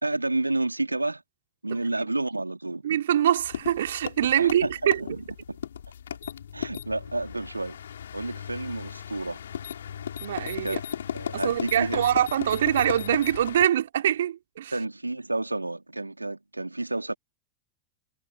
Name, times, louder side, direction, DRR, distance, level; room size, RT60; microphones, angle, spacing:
voice 1, 0.0-1.2 1.6-3.0 4.4-5.2 5.5-5.6 6.5-7.8 8.1-9.4 10.6-10.8 11.1-12.1 14.7-17.1, right 2 dB, 85° right, 3.1 m, -30 dB
voice 2, 2.8-5.0 10.2-10.8 11.3-14.7, right 10 dB, 60° right, 3.0 m, -24 dB
sound 1, 3.4-13.7, left 9 dB, 65° left, 5.0 m, -36 dB
figure-of-eight pair, 90°, 0 cm